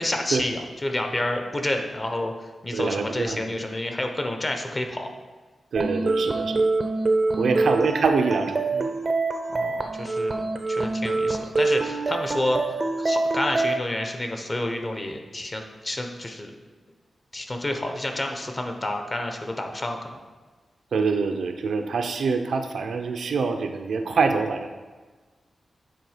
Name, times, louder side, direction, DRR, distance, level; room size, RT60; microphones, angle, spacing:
voice 1, 0.0-2.3 2.6-5.1 7.4-7.6 9.5-10.4 10.7-12.6 13.0-16.5 17.3-20.2, left 1 dB, 25° left, 4 dB, 0.8 m, -29 dB
voice 2, 2.7-3.5 5.7-6.6 7.4-8.9 20.9-24.7, right 4 dB, 85° right, 5 dB, 0.6 m, -25 dB
sound 1, 5.8-13.8, right 3 dB, 35° right, 0.5 m, -25 dB
9.1 x 3.6 x 4.9 m, 1.4 s
wide cardioid pair, 145°, 0 cm